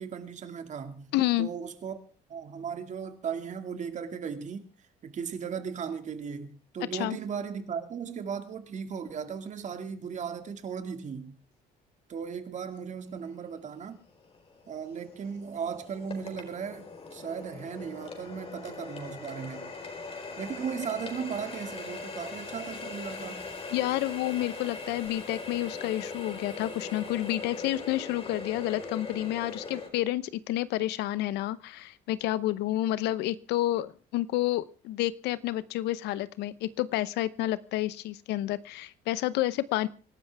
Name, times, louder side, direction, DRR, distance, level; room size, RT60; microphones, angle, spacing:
voice 1, 0.0-2.0 2.3-4.7 5.0-11.4 12.1-14.0 14.7-19.7 20.4-23.5, right 7 dB, 45° right, 2.2 m, -37 dB
voice 2, 1.1-1.5 6.9-7.2 23.7-39.9, left 15 dB, 90° left, 0.9 m, -30 dB
Water tap faucet, 13.4-13.5 14.1-29.9, left 4 dB, 35° left, 4.5 m, -41 dB
25.0 x 12.5 x 3.5 m
cardioid pair, 110°, 17 cm